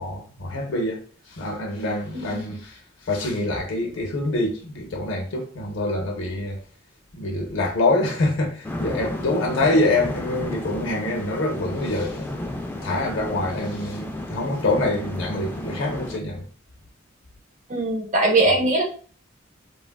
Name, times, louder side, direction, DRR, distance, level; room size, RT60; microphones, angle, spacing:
voice 1, 0.0-6.6 7.1-12.3 12.8-16.5, left 2 dB, 80° left, 0.6 m, -25 dB
sound 1, 8.6-16.2, left 1 dB, 10° left, 0.3 m, -33 dB
voice 2, 17.7-18.8, right 2 dB, 40° right, 0.7 m, -21 dB
3.1 x 2.3 x 2.2 m
head